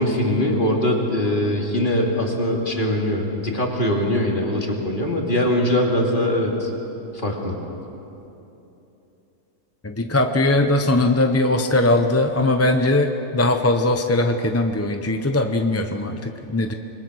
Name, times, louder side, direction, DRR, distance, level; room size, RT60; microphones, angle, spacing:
voice 1, 0.0-6.7 7.1-7.6, left 1 dB, 35° left, 0 dB, 2.9 m, -22 dB
voice 2, 9.8-16.7, left 2 dB, 15° left, 5 dB, 0.6 m, -20 dB
27.0 x 21.0 x 6.3 m, 2.9 s
omnidirectional pair, 1.6 m